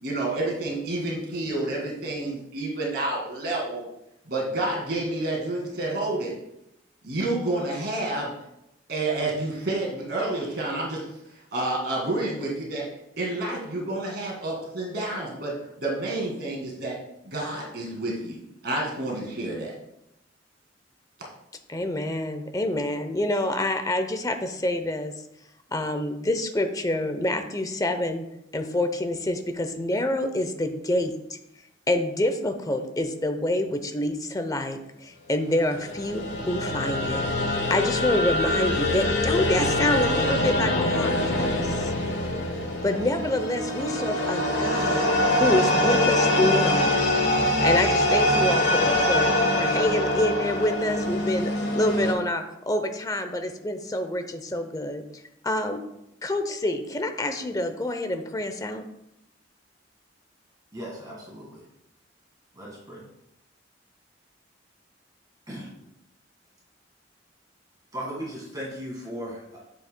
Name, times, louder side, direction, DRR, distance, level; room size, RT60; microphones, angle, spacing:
voice 1, 0.0-3.9 4.3-6.3 7.0-8.3 8.9-11.0 11.5-12.8 13.2-15.5 15.8-17.0 17.3-19.7, right 2 dB, 60° right, -2 dB, 2.2 m, -29 dB
voice 2, 21.7-25.1 25.7-28.3 28.5-31.4 31.9-41.9 42.8-45.1 45.3-55.8 56.2-58.8, left 1 dB, 20° left, 7 dB, 0.6 m, -27 dB
sound 1, 35.7-52.1, left 1 dB, 65° left, 1.4 m, -24 dB
voice 3, 60.7-61.6 62.5-63.0 65.5-65.7 67.9-69.6, equal, 20° right, -5 dB, 1.7 m, -37 dB
9.4 x 7.2 x 2.2 m, 0.84 s
head